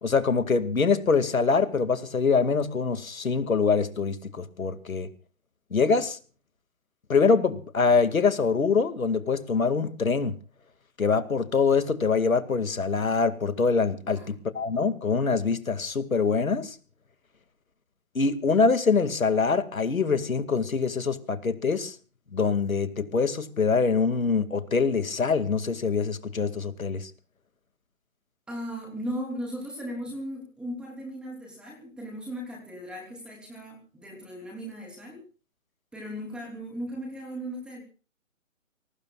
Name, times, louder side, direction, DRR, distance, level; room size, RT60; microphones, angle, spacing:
voice 1, 0.0-5.1 5.7-6.2 7.1-10.4 11.0-16.8 18.1-22.0 22.3-27.1, left 5 dB, 80° left, 2.3 m, -24 dB
voice 2, 28.5-35.2 35.9-37.9, equal, ahead, 3.2 m, -37 dB
29.0 x 19.5 x 2.4 m
hypercardioid pair, 165°, 40 cm